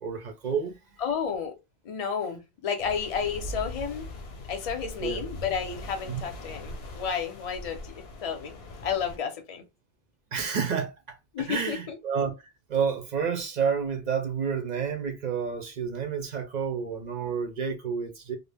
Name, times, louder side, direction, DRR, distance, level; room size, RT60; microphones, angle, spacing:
voice 1, 0.0-0.8 5.0-5.2 6.1-6.2 10.3-11.2 11.5-12.3 12.7-18.4, right 6 dB, 55° right, 0.6 m, -29 dB
voice 2, 1.0-1.6 1.8-4.1 4.5-8.5 8.8-9.6 11.3-11.9, left 7 dB, 40° left, 0.6 m, -31 dB
sound 1, 2.8-9.2, left 1 dB, 80° left, 0.9 m, -41 dB
2.4 x 2.1 x 3.3 m
omnidirectional pair, 1.0 m